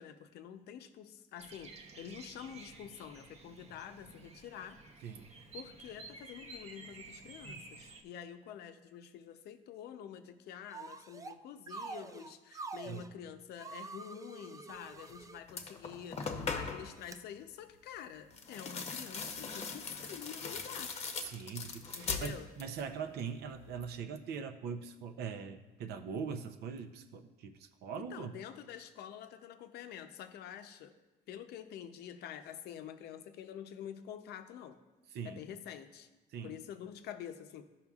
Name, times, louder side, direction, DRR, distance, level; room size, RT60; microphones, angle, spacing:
voice 1, 0.0-4.8 5.5-21.0 22.0-22.5 28.0-30.9 31.3-34.8 35.2-36.1 36.4-37.7, left 9 dB, 75° left, 8 dB, 0.6 m, -47 dB
Bird vocalization bird call bird song, 1.4-8.0, right 3 dB, 40° right, 0.8 m, -52 dB
sound 1, 10.7-11.4 11.7-13.1 13.6-15.4 16.0-16.3 17.0-17.2, right 4 dB, 20° right, 0.3 m, -46 dB
sound 2, 15.0-15.2 15.5-17.0 18.3-22.9 23.2-23.8, left 4 dB, 40° left, 0.8 m, -40 dB
voice 2, 21.2-28.3 35.1-35.4 36.3-36.5, right 6 dB, 70° right, 7 dB, 0.6 m, -42 dB
12.5 x 5.7 x 2.4 m, 1.1 s
cardioid pair, 110°, 17 cm